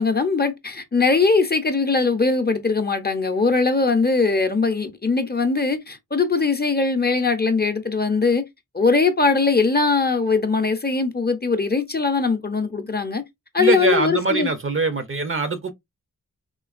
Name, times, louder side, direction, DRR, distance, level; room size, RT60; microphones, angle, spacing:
voice 1, 0.0-8.4 8.7-13.2 13.5-14.5, left 4 dB, 30° left, 0.6 m, -21 dB
voice 2, 13.6-15.7, right 3 dB, 40° right, 0.6 m, -23 dB
3.7 x 2.8 x 2.4 m
wide cardioid pair, 85°, 34 cm